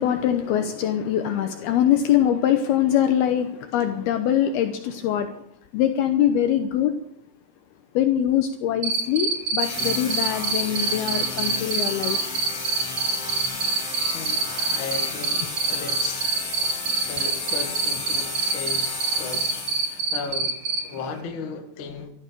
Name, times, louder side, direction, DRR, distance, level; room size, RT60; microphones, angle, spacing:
voice 1, 0.0-5.3 5.7-6.9 8.0-12.2, left 10 dB, 75° left, 2.4 m, -23 dB
Cricket, 8.8-20.8, right 4 dB, 60° right, 1.3 m, -24 dB
sound 1, 9.6-20.1, left 3 dB, 30° left, 5.1 m, -32 dB
voice 2, 14.1-16.3 17.0-20.6 20.8-22.1, left 5 dB, 60° left, 1.3 m, -36 dB
14.0 x 13.5 x 6.8 m
omnidirectional pair, 5.4 m